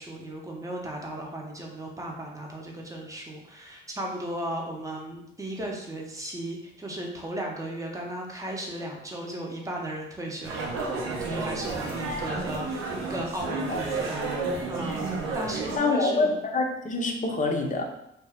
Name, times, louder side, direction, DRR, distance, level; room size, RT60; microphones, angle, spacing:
voice 1, 0.0-10.8 11.0-16.4, right 1 dB, 15° right, 0 dB, 0.7 m, -36 dB
sound 1, 10.4-15.8, right 3 dB, 85° right, 0.6 m, -31 dB
voice 2, 14.3-14.6 15.8-17.9, left 3 dB, 40° left, 2 dB, 0.6 m, -26 dB
2.7 x 2.2 x 3.4 m, 0.79 s
cardioid pair, 90°, 20 cm